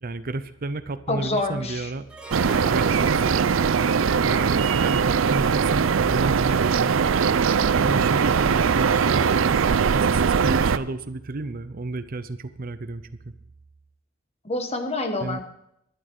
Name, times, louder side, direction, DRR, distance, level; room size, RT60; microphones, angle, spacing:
voice 1, 0.0-2.1 2.6-3.4 4.2-7.0 7.8-9.6 9.9-13.3 15.2-15.4, right 2 dB, 45° right, 12 dB, 0.7 m, -32 dB
voice 2, 1.1-1.9 14.4-15.4, left 2 dB, 30° left, 6 dB, 1.4 m, -27 dB
Harp, 2.1-7.2, right 1 dB, 5° right, 1.4 m, -41 dB
sound 1, 2.3-10.8, right 6 dB, 90° right, 0.5 m, -21 dB
12.0 x 11.0 x 5.4 m, 0.78 s
head